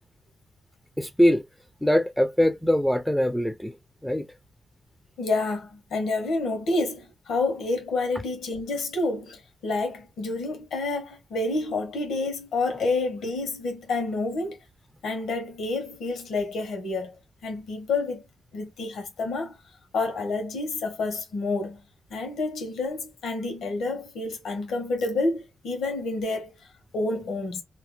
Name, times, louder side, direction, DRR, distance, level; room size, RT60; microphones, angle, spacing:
voice 1, 1.0-1.4 1.8-3.7 4.0-4.3, equal, 5° left, 0.3 m, -22 dB
voice 2, 5.2-14.6 15.0-17.1 17.4-18.2 18.5-19.6 19.9-21.8 22.1-26.5 26.9-27.6, left 3 dB, 85° left, 1.2 m, -29 dB
2.8 x 2.0 x 3.2 m
cardioid pair, 90°, 0 cm